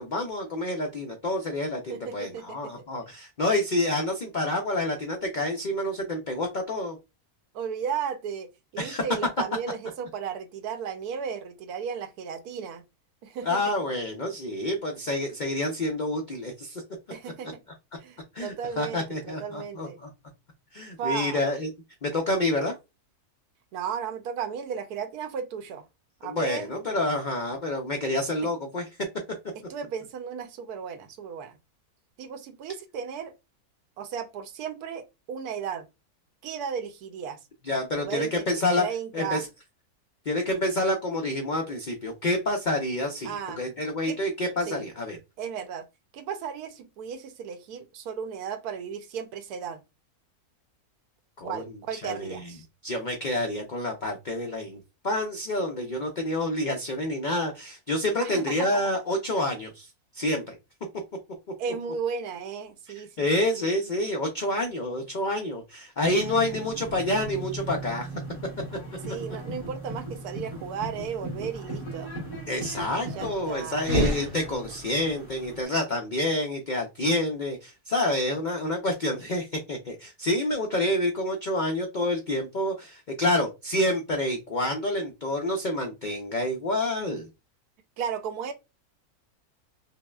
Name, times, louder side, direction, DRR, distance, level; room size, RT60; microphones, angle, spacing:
voice 1, 0.0-7.0 8.8-9.0 13.4-16.8 18.3-20.1 20.7-21.7 22.0-22.7 26.2-28.9 37.7-38.8 39.1-39.5 40.3-45.2 51.4-51.6 51.9-52.5 52.8-60.5 63.2-68.1 72.5-87.3, left 1 dB, 70° left, 0.4 m, -28 dB
voice 2, 1.9-2.7 7.5-12.8 13.2-13.6 17.1-17.6 18.0-20.0 21.0-21.4 23.7-25.9 26.2-26.7 28.4-28.5 29.5-31.6 32.2-33.3 34.0-35.9 36.4-37.4 37.9-38.5 38.8-39.4 43.2-43.6 44.1-44.2 44.7-44.9 45.4-45.9 46.1-49.8 51.4-52.7 58.2-58.9 61.6-63.3 63.5-63.7 69.1-72.1 73.1-73.9 74.2-74.3 88.0-88.5, right 7 dB, 80° right, 1.1 m, -35 dB
sound 1, 66.0-75.6, right 2 dB, 55° left, 1.7 m, -38 dB
sound 2, 73.8-75.1, equal, 45° right, 0.9 m, -28 dB
5.4 x 2.1 x 2.2 m
omnidirectional pair, 1.6 m